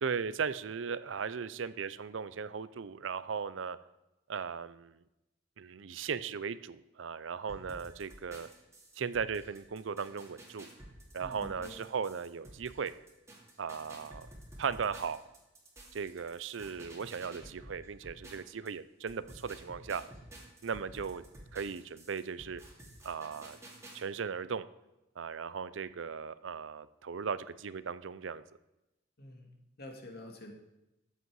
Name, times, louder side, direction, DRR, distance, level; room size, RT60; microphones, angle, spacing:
voice 1, 0.0-3.8 4.3-5.0 5.6-8.5 9.0-10.7 11.1-12.9 13.6-14.3 14.6-15.2 15.9-20.0 20.6-21.2 21.5-22.6 23.0-23.6 23.9-24.7 25.2-28.4, right 6 dB, 75° right, 16 dB, 0.5 m, -37 dB
sound 1, 7.5-18.7 19.1-24.0, right 1 dB, 15° right, 2.4 m, -52 dB
voice 2, 11.2-11.8 29.2-30.5, left 1 dB, 55° left, 3 dB, 1.9 m, -48 dB
13.5 x 8.2 x 4.7 m, 0.95 s
head